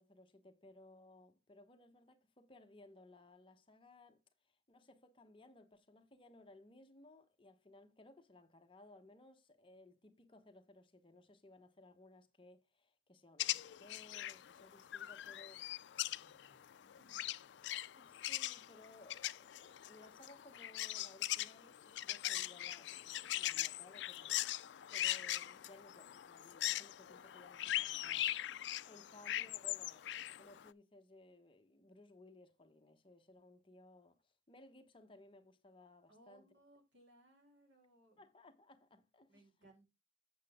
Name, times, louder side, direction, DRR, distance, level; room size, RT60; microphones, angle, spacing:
voice 1, 0.0-15.6 17.9-24.5 24.9-36.4 38.2-39.7, left 2 dB, 30° left, 1.0 m, -61 dB
sound 1, 13.4-30.7, left 14 dB, 70° left, 0.4 m, -41 dB
voice 2, 15.9-17.3 17.7-17.8 28.9-29.4 36.1-38.3 39.3-39.9, right 1 dB, 85° right, 3.9 m, -68 dB
8.1 x 7.7 x 3.6 m
head